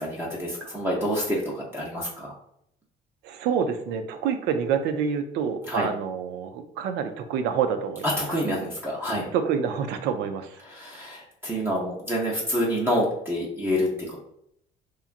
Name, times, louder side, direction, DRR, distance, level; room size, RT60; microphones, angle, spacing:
voice 1, 0.0-1.4 1.7-2.3 5.7-5.9 8.2-9.3 10.7-14.2, equal, 15° right, -4 dB, 0.6 m, -27 dB
voice 2, 3.2-8.1 9.3-10.6, right 7 dB, 85° right, 7 dB, 0.4 m, -27 dB
2.9 x 2.3 x 2.4 m, 0.73 s
cardioid pair, 110°, 17 cm